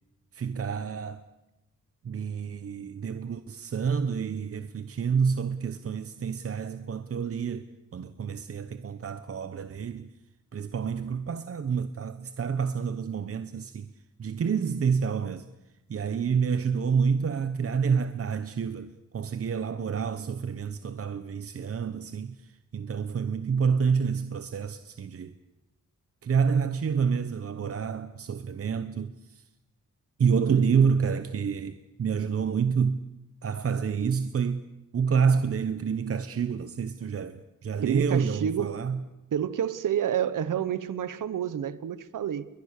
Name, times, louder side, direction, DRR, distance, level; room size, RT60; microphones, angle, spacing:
voice 1, 0.3-1.2 2.0-10.1 10.5-13.9 14.2-15.5 15.9-25.3 26.2-29.4 30.2-33.0 33.4-34.6 34.9-39.0, right 6 dB, 50° right, 1.0 m, -28 dB
voice 2, 37.8-38.8 39.3-42.5, right 9 dB, 85° right, 1.2 m, -29 dB
30.0 x 22.5 x 6.7 m
wide cardioid pair, 150°, 31 cm